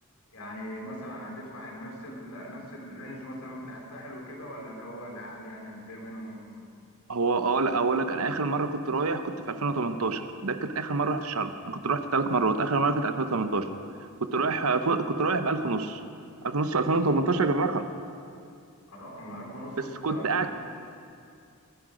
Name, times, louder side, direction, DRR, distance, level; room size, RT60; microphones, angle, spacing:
voice 1, 0.3-6.7 18.9-20.5, equal, 85° left, -1 dB, 3.2 m, -41 dB
voice 2, 7.1-13.7 14.3-16.0 16.4-17.9 20.0-20.5, right 3 dB, 75° right, 9 dB, 0.8 m, -26 dB
20.5 x 10.0 x 5.0 m, 2.4 s
head